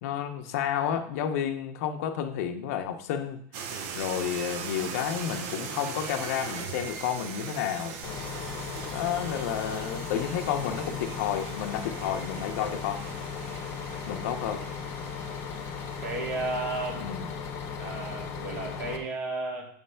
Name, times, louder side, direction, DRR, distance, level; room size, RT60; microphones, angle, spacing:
voice 1, 0.0-3.4 3.9-8.0 8.9-13.0 14.1-14.6 17.0-17.3, left 9 dB, 70° left, 5 dB, 0.7 m, -31 dB
sound 1, 3.5-18.7, right 6 dB, 50° right, 0.7 m, -41 dB
Bus, 8.0-19.0, left 6 dB, 35° left, 1.0 m, -37 dB
voice 2, 16.0-17.1 17.8-19.7, right 2 dB, 80° right, 0 dB, 1.5 m, -33 dB
7.2 x 3.3 x 5.6 m, 0.63 s
supercardioid pair, 160°, 9 cm